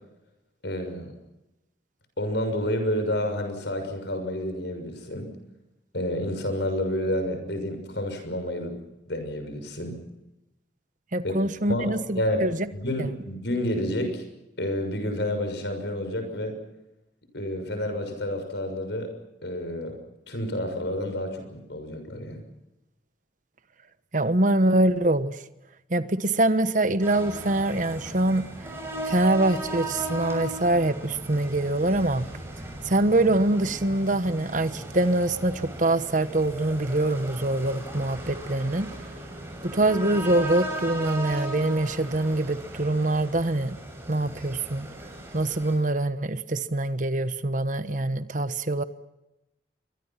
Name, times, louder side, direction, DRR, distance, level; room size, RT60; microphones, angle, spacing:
voice 1, 0.6-1.1 2.2-5.3 5.9-8.8 9.1-10.0 11.2-11.3 11.7-12.4 12.7-14.2 14.6-16.6 17.3-19.1 19.4-20.0 20.3-22.4, left 1 dB, 70° left, 7 dB, 6.5 m, -29 dB
voice 2, 11.1-12.6 13.0-13.1 24.1-25.4 25.9-28.4 29.0-32.2 32.8-38.9 39.6-43.8 44.1-44.9 45.3-48.8, right 2 dB, 45° right, 12 dB, 1.2 m, -24 dB
sound 1, 27.0-45.8, right 1 dB, 15° right, 6.3 m, -37 dB
28.5 x 23.5 x 5.9 m, 0.96 s
head